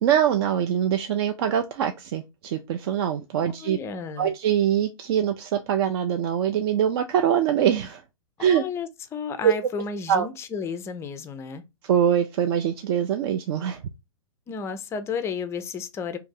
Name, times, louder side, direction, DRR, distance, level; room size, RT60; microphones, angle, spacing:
voice 1, 0.0-3.8 4.2-8.0 8.4-8.6 9.4-9.5 10.1-10.3 11.8-13.8, right 9 dB, 50° right, 0.4 m, -23 dB
voice 2, 3.4-4.3 8.4-11.6 14.5-16.2, left 5 dB, 15° left, 0.4 m, -32 dB
2.8 x 2.6 x 3.7 m
hypercardioid pair, 120°, 17 cm